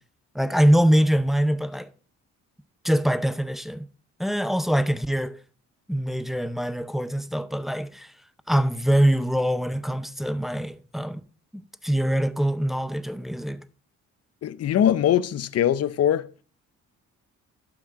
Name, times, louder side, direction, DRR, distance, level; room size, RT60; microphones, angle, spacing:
voice 1, 0.3-1.9 2.8-3.8 4.2-5.4 5.9-8.1 8.5-11.2 11.5-13.6, equal, ahead, 0.5 m, -23 dB
voice 2, 14.4-16.3, left 10 dB, 55° left, 0.7 m, -22 dB
11.5 x 6.1 x 3.5 m
cardioid pair, 90°, 30 cm